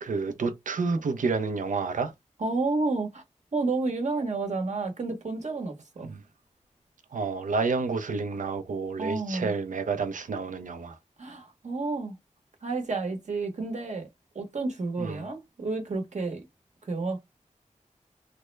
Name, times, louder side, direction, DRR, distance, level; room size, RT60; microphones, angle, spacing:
voice 1, 0.0-2.1 6.1-6.2 7.1-11.0 15.0-15.2, right 4 dB, 80° right, 0.6 m, -29 dB
voice 2, 2.4-3.2 3.5-6.1 9.0-9.5 11.2-12.2 12.6-14.1 14.3-16.4 16.8-17.2, right 3 dB, 65° right, 1.1 m, -30 dB
3.4 x 2.1 x 3.2 m
wide cardioid pair, 105°, 13 cm